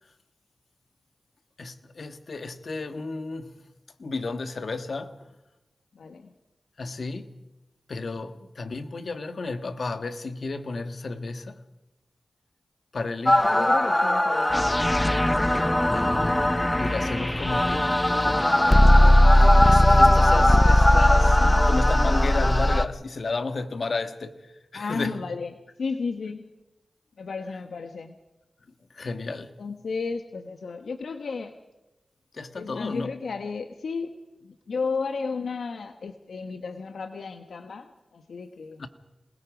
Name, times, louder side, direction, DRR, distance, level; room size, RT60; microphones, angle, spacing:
voice 1, 1.6-3.6 4.0-5.3 6.8-7.4 7.9-11.6 12.9-13.6 15.9-16.4 16.8-17.9 18.2-19.1 19.6-25.2 28.9-29.6 32.3-33.1 38.8-38.9, left 3 dB, 70° left, 1.6 m, -33 dB
voice 2, 5.9-6.3 13.3-14.7 24.7-25.5 25.8-26.5 27.2-28.1 29.6-31.5 32.5-34.1 34.4-38.8, left 4 dB, 85° left, 1.2 m, -33 dB
sound 1, 13.3-22.9, left 1 dB, 15° left, 1.1 m, -18 dB
27.0 x 20.0 x 5.2 m
cardioid pair, 45°, 0 cm